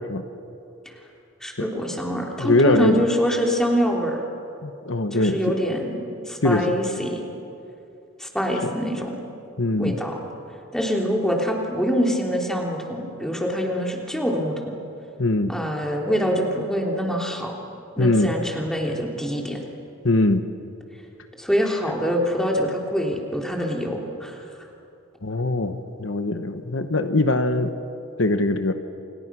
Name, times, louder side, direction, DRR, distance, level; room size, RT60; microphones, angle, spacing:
voice 1, 1.4-4.2 5.1-7.3 8.2-9.2 9.8-10.2 10.7-14.8 15.5-17.5 18.0-19.6 21.4-24.4, equal, 5° left, 0 dB, 3.3 m, -25 dB
voice 2, 2.4-3.0 4.6-5.5 6.4-6.6 9.6-9.9 15.2-15.5 18.0-18.3 20.0-20.4 25.2-25.7 26.0-27.7 28.2-28.7, left 2 dB, 65° left, 8 dB, 1.1 m, -21 dB
29.5 x 27.0 x 6.2 m, 2.7 s
head